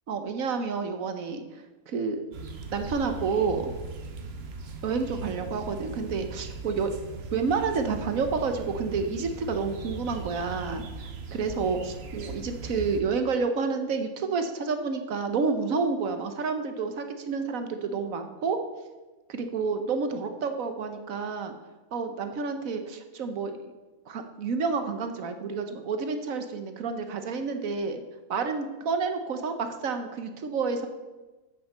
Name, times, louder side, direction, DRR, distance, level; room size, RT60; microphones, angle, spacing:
voice 1, 0.1-2.3 2.7-3.7 4.8-7.0 7.3-18.6 19.3-21.5 21.9-23.6 24.1-28.0 28.3-30.9, right 5 dB, 60° right, 7 dB, 1.2 m, -29 dB
sound 1, 2.3-13.0, right 3 dB, 45° right, 1.0 m, -39 dB
8.1 x 6.6 x 6.7 m, 1.2 s
omnidirectional pair, 1.7 m